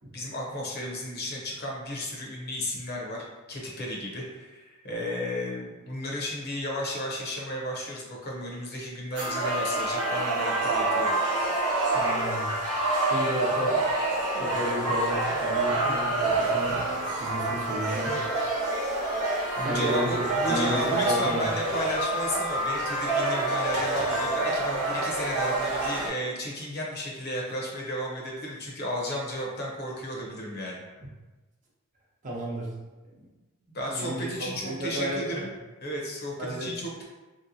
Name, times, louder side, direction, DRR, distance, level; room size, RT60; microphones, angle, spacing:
voice 1, 0.1-11.1 19.6-30.8 33.7-35.5 35.8-37.0, left 1 dB, 45° left, -2 dB, 0.7 m, -33 dB
sound 1, 9.2-26.1, right 2 dB, 90° right, 1.0 m, -27 dB
voice 2, 11.9-12.5 13.0-13.8 14.3-16.8 17.1-18.2 19.6-20.2 20.5-21.5 32.2-32.7 33.7-35.4 36.4-36.7, right 1 dB, 35° right, -4 dB, 0.7 m, -32 dB
3.1 x 2.9 x 2.7 m, 1.2 s
head